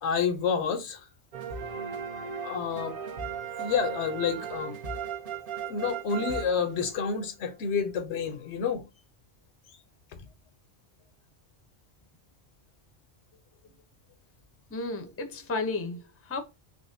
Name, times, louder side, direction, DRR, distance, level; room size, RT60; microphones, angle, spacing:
voice 1, 0.0-1.1 2.4-3.0 3.6-4.8 5.7-8.8 10.1-10.2, left 6 dB, 85° left, 1.0 m, -29 dB
sound 1, 1.3-7.2, right 7 dB, 55° right, 0.9 m, -36 dB
voice 2, 14.7-16.4, left 3 dB, 20° left, 0.4 m, -33 dB
3.9 x 3.0 x 2.5 m
omnidirectional pair, 1.1 m